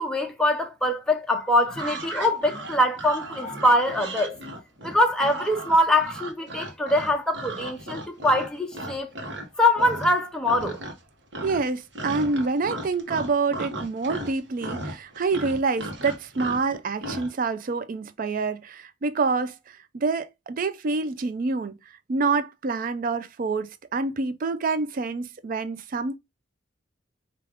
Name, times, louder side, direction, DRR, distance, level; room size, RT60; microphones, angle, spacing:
voice 1, 0.0-4.4 4.8-9.1 9.6-10.8, left 1 dB, 5° left, 0.6 m, -23 dB
sound 1, 1.7-9.5 9.8-10.2 10.4-11.1 11.3-17.3, right 1 dB, 65° right, 1.0 m, -36 dB
voice 2, 11.4-21.7 22.1-26.2, right 4 dB, 45° right, 0.4 m, -27 dB
4.8 x 2.4 x 3.4 m
head